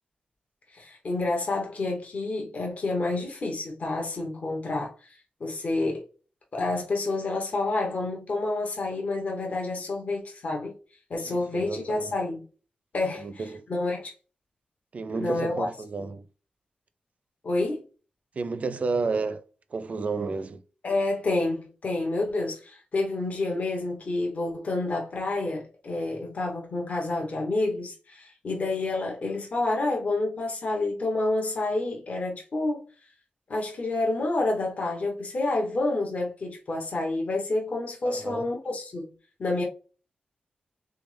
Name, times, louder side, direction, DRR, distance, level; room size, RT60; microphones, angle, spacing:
voice 1, 0.7-4.9 5.4-6.0 6.5-10.7 11.1-12.4 12.9-13.3 13.7-14.1 15.2-15.7 17.4-17.8 20.8-32.9 33.5-39.1 39.4-39.6, left 2 dB, 50° left, 1.2 m, -29 dB
voice 2, 11.2-12.2 13.1-13.7 14.9-16.3 18.3-19.4 19.7-20.6 38.0-38.5, right 4 dB, 50° right, 0.5 m, -31 dB
3.7 x 3.5 x 3.3 m
wide cardioid pair, 125°, 3 cm